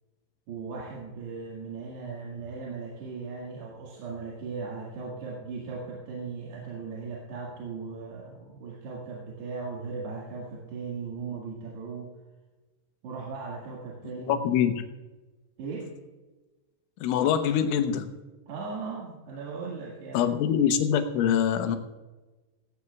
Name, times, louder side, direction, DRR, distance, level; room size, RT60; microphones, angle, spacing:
voice 1, 0.5-12.1 13.0-14.5 15.6-15.9 18.5-20.2, right 4 dB, 65° right, -3 dB, 3.7 m, -38 dB
voice 2, 14.3-14.8 17.0-18.1 20.1-21.8, left 8 dB, 80° left, 7 dB, 3.4 m, -24 dB
18.0 x 16.0 x 2.4 m, 1.2 s
omnidirectional pair, 5.6 m